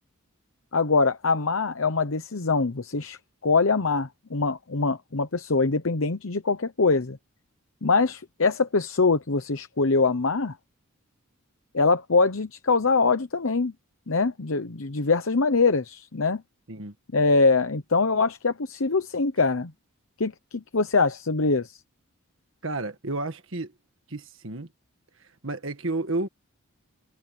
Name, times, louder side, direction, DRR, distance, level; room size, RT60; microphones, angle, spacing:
voice 1, 0.7-3.2 3.4-7.2 7.8-10.6 11.7-13.7 14.1-16.4 17.1-19.7 20.2-21.8, left 4 dB, 65° left, 0.9 m, -23 dB
voice 2, 22.6-23.7 24.1-24.7 25.2-26.3, right 2 dB, 60° right, 1.6 m, -31 dB
head